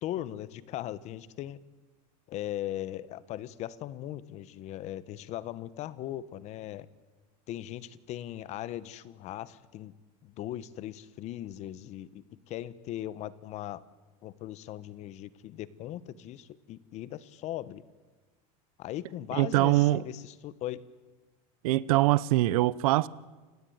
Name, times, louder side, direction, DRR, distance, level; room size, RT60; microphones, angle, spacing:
voice 1, 0.0-1.6 2.3-6.9 7.5-9.9 10.2-13.8 14.2-17.8 18.8-20.8, left 13 dB, 40° left, 1.1 m, -39 dB
voice 2, 19.4-20.0 21.6-23.1, right 17 dB, 75° right, 0.8 m, -23 dB
29.0 x 16.5 x 9.3 m
supercardioid pair, 145°, 18 cm